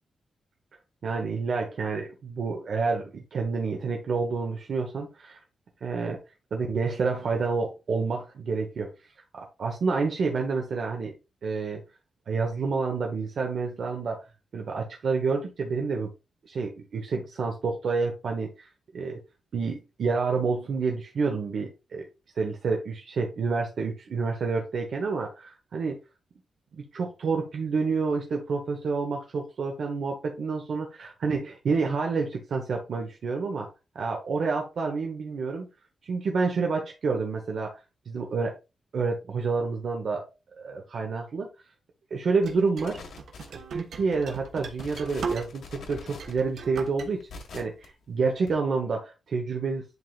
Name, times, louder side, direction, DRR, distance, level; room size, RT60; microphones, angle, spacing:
voice 1, 1.0-5.4 5.8-6.2 6.5-8.9 9.3-11.1 11.4-11.8 12.3-14.2 14.5-16.1 16.4-18.7 18.9-19.2 19.5-22.1 22.3-26.0 26.7-33.7 33.9-35.7 36.1-37.7 38.1-38.5 38.9-40.3 40.6-41.5 42.1-43.0 43.5-47.3 47.5-49.8, right 4 dB, 55° right, 2 dB, 1.1 m, -29 dB
sound 1, 42.4-45.8 46.1-47.1, right 5 dB, 80° right, 1.3 m, -37 dB
sound 2, 42.8-43.8 44.3-44.4 44.7-47.9 48.4-48.5, left 3 dB, 75° left, 1.7 m, -44 dB
11.0 x 3.7 x 2.4 m, 0.27 s
wide cardioid pair, 170°, 0 cm